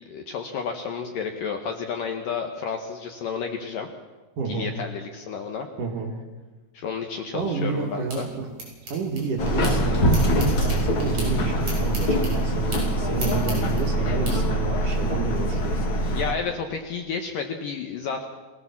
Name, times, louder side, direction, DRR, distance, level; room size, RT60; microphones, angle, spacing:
voice 1, 0.1-3.9 4.5-5.7 6.7-8.3 16.1-18.3, left 6 dB, 70° left, 5 dB, 2.2 m, -31 dB
voice 2, 4.4-4.7 5.8-6.1 7.3-8.5 8.8-15.9, right 4 dB, 55° right, 1 dB, 2.9 m, -30 dB
sound 1, 7.4-9.7 10.1-14.3, right 2 dB, 35° right, 8.1 m, -36 dB
Subway metro underground, 9.4-16.3, equal, 50° left, 1.6 m, -23 dB
22.5 x 17.0 x 7.2 m, 1.3 s
omnidirectional pair, 5.1 m